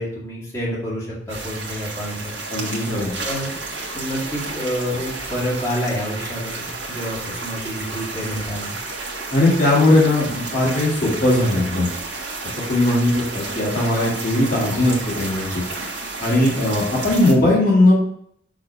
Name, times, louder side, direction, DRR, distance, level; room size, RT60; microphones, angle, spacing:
voice 1, 0.0-2.3 2.6-2.7 3.2-3.5 3.9-8.7, equal, 15° left, -8 dB, 2.3 m, -28 dB
sound 1, 1.3-17.3, right 3 dB, 80° right, 1.6 m, -31 dB
voice 2, 2.5-3.1 9.3-11.9 12.7-15.6 16.2-18.0, left 1 dB, 50° left, -6 dB, 1.9 m, -18 dB
6.1 x 3.3 x 5.6 m, 0.70 s
head